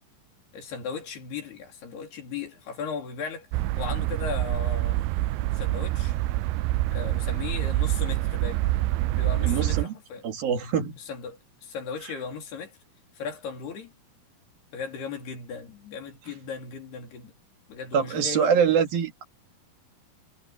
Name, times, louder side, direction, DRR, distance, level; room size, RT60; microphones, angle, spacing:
voice 1, 0.5-5.0 5.5-6.2 6.9-8.6 9.2-10.3 11.0-12.8 13.1-13.9 14.7-17.3 17.7-18.5, left 5 dB, 90° left, 5.7 m, -37 dB
sound 1, 3.5-9.8, right 16 dB, 85° right, 2.5 m, -26 dB
voice 2, 9.4-9.9 10.2-11.0 17.9-19.2, right 7 dB, 70° right, 4.1 m, -24 dB
omnidirectional pair, 4.5 m